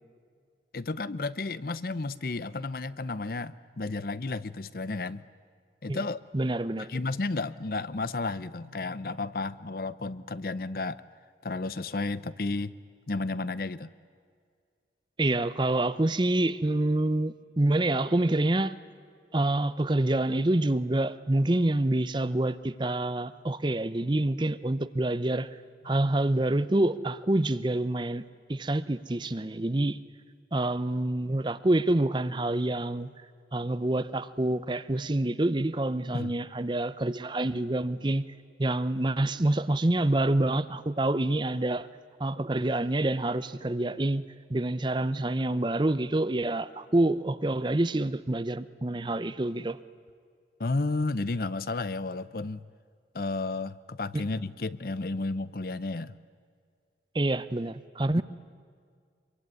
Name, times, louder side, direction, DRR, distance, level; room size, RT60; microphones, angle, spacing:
voice 1, 0.7-5.2 5.8-6.2 6.8-11.0 11.4-12.7 13.1-13.9 36.1-36.3 50.6-52.6 53.1-56.1 58.2-58.3, left 3 dB, 55° left, 16 dB, 0.7 m, -32 dB
voice 2, 6.3-6.9 15.2-18.8 19.3-25.5 25.8-28.2 28.5-30.0 30.5-33.1 33.5-38.3 38.6-41.9 42.2-49.8 57.1-58.2, right 1 dB, 25° right, 14 dB, 0.6 m, -27 dB
25.5 x 23.0 x 9.5 m, 2.1 s
head